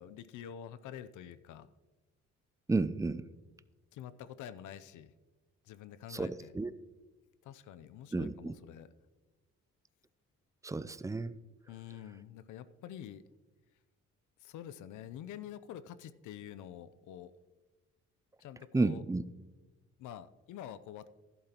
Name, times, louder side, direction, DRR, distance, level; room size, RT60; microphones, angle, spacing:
voice 1, 0.0-1.7 3.9-5.1 5.6-6.5 7.4-8.9 11.7-13.2 14.4-17.3 18.4-19.0 20.0-21.1, left 10 dB, 80° left, 15 dB, 0.6 m, -47 dB
voice 2, 2.7-3.3 6.1-6.7 8.1-8.5 10.6-11.3 18.7-19.3, right 3 dB, 10° right, 15 dB, 0.4 m, -32 dB
12.0 x 11.0 x 2.9 m, 1.2 s
cardioid pair, 90°, 30 cm